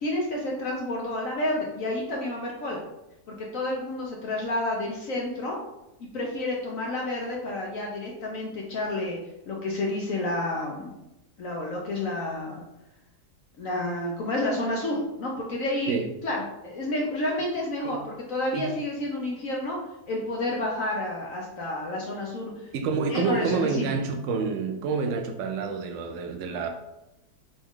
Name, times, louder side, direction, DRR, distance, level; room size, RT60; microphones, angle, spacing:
voice 1, 0.0-2.8 3.3-5.6 6.1-9.2 9.5-10.9 11.4-12.6 13.6-16.0 16.2-19.8 20.1-22.7 23.1-23.9, left 1 dB, 60° left, -2 dB, 1.0 m, -30 dB
voice 2, 22.7-26.7, right 4 dB, 80° right, 5 dB, 0.6 m, -28 dB
5.2 x 2.4 x 3.6 m, 0.91 s
omnidirectional pair, 1.9 m